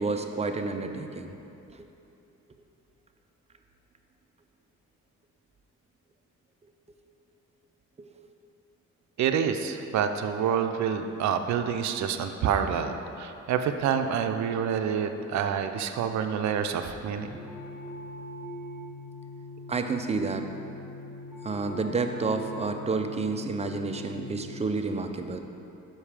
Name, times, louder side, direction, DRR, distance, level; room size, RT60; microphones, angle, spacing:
voice 1, 0.0-1.3 1.7-1.9 8.0-8.1 19.7-20.5 21.4-25.4, right 3 dB, 20° right, 6 dB, 0.5 m, -30 dB
voice 2, 9.2-17.4, right 7 dB, 65° right, 7 dB, 0.5 m, -27 dB
sound 1, 17.3-24.7, left 1 dB, ahead, 1.3 m, -42 dB
5.8 x 5.4 x 4.9 m, 2.8 s
cardioid pair, 90°, 30 cm